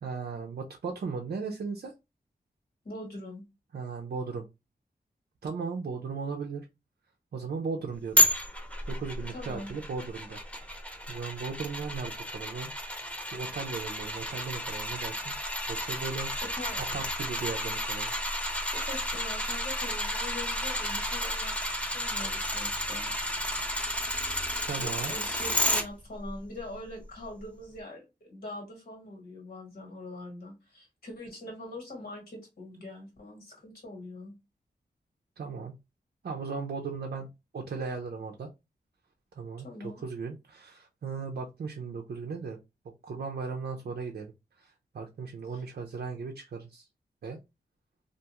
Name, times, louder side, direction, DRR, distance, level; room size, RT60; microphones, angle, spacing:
voice 1, 0.0-1.9 3.7-4.4 5.4-6.6 7.3-8.4 8.8-10.4 11.1-12.7 13.3-15.3 15.7-16.4 16.9-18.1 24.7-25.1 35.4-35.7 36.2-37.3 37.5-38.5 39.4-42.6 42.8-46.9 47.2-47.4, right 5 dB, 65° right, 0.5 m, -37 dB
voice 2, 2.8-3.5 9.3-9.7 16.1-16.8 18.4-23.1 24.8-34.3 39.6-40.0 45.5-45.6, left 1 dB, 65° left, 1.5 m, -43 dB
sound 1, 8.2-25.8 26.3-26.4, left 1 dB, 5° left, 0.8 m, -31 dB
2.5 x 2.3 x 2.8 m
cardioid pair, 50°, 17 cm